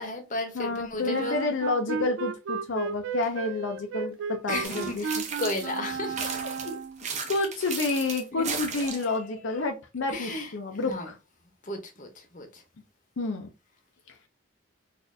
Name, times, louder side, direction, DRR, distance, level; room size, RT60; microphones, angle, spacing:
voice 1, 0.0-1.4 4.5-6.8 8.3-9.7 10.1-10.5 10.9-11.1 11.6-12.6, left 2 dB, 40° left, 0.8 m, -35 dB
voice 2, 0.5-5.1 7.3-11.2 13.2-13.5, left 3 dB, 70° left, 0.5 m, -29 dB
Wind instrument woodwind instrument, 1.0-7.1, right 5 dB, 65° right, 0.3 m, -34 dB
sound 1, 4.6-5.8 6.2-9.2, right 5 dB, 35° right, 0.7 m, -35 dB
4.1 x 2.5 x 2.5 m
head